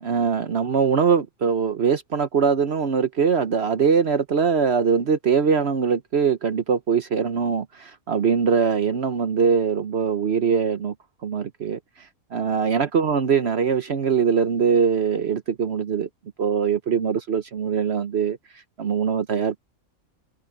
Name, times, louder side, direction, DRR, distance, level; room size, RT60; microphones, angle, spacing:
voice 1, 0.0-10.9 11.2-11.8 12.3-16.1 16.4-18.4 18.8-19.6, right 6 dB, 55° right, 1.0 m, -22 dB
omnidirectional pair, 1.5 m